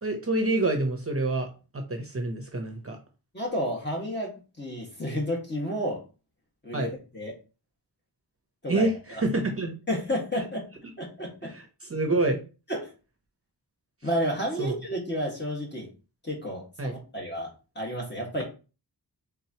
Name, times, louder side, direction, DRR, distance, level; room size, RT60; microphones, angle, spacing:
voice 1, 0.0-1.5 1.7-3.0 6.7-6.9 8.7-9.7 11.4-12.4 14.6-14.7 16.8-16.9, right 2 dB, 35° right, 4 dB, 0.8 m, -27 dB
voice 2, 3.3-6.0 6.6-7.3 8.6-9.2 9.9-10.7 11.0-11.5 12.7-12.9 14.0-15.9 16.2-18.4, equal, 25° left, -1 dB, 1.7 m, -31 dB
4.5 x 3.7 x 2.9 m, 0.33 s
wide cardioid pair, 100°, 41 cm